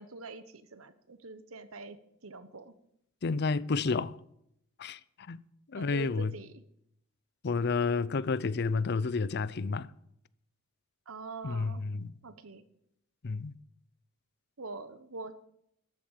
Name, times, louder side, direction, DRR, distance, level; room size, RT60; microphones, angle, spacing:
voice 1, 0.0-2.0 2.2-2.7 5.7-6.6 11.1-11.8 12.2-12.6 14.6-15.3, right 3 dB, 85° right, 1.1 m, -44 dB
voice 2, 3.2-4.2 4.8-5.0 5.3-5.4 5.7-6.3 7.4-9.9 11.4-12.1 13.2-13.6, left 4 dB, 55° left, 0.5 m, -30 dB
13.5 x 8.6 x 7.4 m
head